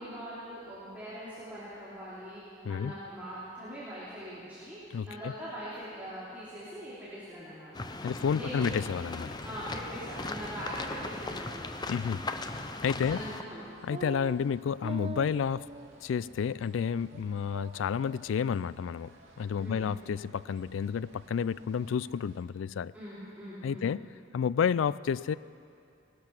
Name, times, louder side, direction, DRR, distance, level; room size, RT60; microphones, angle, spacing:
voice 1, 0.0-4.8 5.1-8.6 9.4-11.8 13.0-13.6 19.6-19.9 22.9-23.9, equal, 10° right, -12 dB, 3.1 m, -42 dB
voice 2, 4.9-5.3 8.0-9.4 11.9-12.3 12.8-13.2 13.8-15.7 16.0-19.1 19.4-22.9 23.6-24.1 24.3-25.3, left 7 dB, 90° left, 19 dB, 0.3 m, -30 dB
sound 1, 7.7-13.4, left 2 dB, 25° left, 0.6 m, -38 dB
sound 2, 8.5-22.4, right 1 dB, 85° right, 2.3 m, -56 dB
sound 3, 13.9-14.4 14.8-16.0 16.4-16.5 16.9-17.2 17.5-18.3, right 4 dB, 30° right, 0.4 m, -43 dB
19.0 x 12.0 x 5.9 m, 2.6 s
head